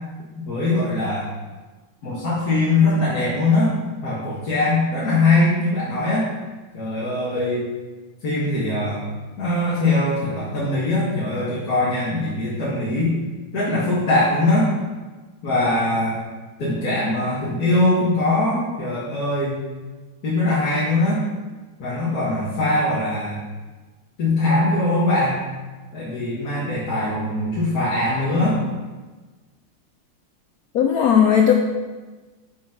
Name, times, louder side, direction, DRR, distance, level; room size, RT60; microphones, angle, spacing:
voice 1, 0.5-1.2 2.0-3.7 4.0-6.3 6.7-7.6 8.2-9.0 9.4-13.1 13.5-14.7 15.4-16.2 16.6-19.6 20.2-21.2 21.8-23.4 24.2-25.4 25.9-28.6, left 2 dB, 45° left, -8 dB, 2.1 m, -21 dB
voice 2, 30.7-31.5, left 8 dB, 80° left, 3 dB, 0.8 m, -16 dB
6.3 x 5.8 x 5.9 m, 1.3 s
omnidirectional pair, 2.3 m